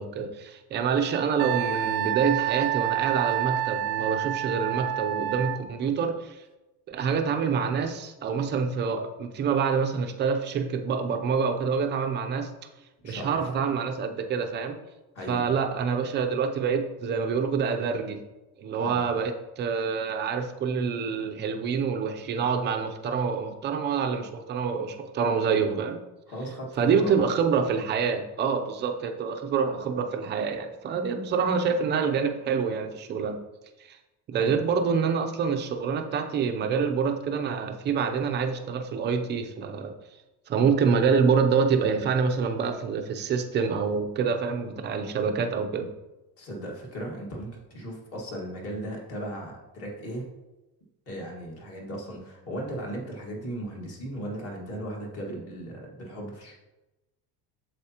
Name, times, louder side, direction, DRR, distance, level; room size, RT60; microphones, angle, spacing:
voice 1, 0.0-6.4 6.9-12.5 13.0-14.8 15.3-18.2 18.6-26.0 26.8-33.4 33.9-34.0 34.3-39.9 40.5-45.9, right 6 dB, 30° right, 6 dB, 0.5 m, -26 dB
Wind instrument woodwind instrument, 1.4-5.6, right 14 dB, 85° right, 0.6 m, -28 dB
voice 2, 13.0-13.5 15.1-15.5 18.8-19.0 26.3-27.3 34.3-34.6 46.4-50.2 51.0-56.5, right 1 dB, 40° left, -1 dB, 1.8 m, -37 dB
8.3 x 7.3 x 2.9 m, 1.0 s
cardioid pair, 180°, 39 cm